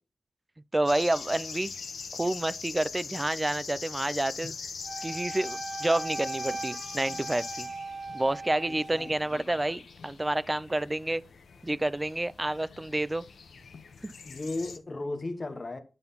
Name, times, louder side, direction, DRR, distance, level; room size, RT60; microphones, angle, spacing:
voice 1, 0.7-1.7 2.2-4.5 5.0-7.7 8.1-11.2 11.6-13.2 14.0-14.1, right 1 dB, 15° right, 0.4 m, -29 dB
sound 1, 0.9-14.8, left 5 dB, 90° left, 1.0 m, -42 dB
Wind instrument woodwind instrument, 4.8-9.1, right 3 dB, 50° right, 0.7 m, -38 dB
voice 2, 8.7-9.8 14.2-15.8, left 2 dB, 35° left, 1.1 m, -37 dB
10.5 x 3.9 x 5.6 m
wide cardioid pair, 105°, 0 cm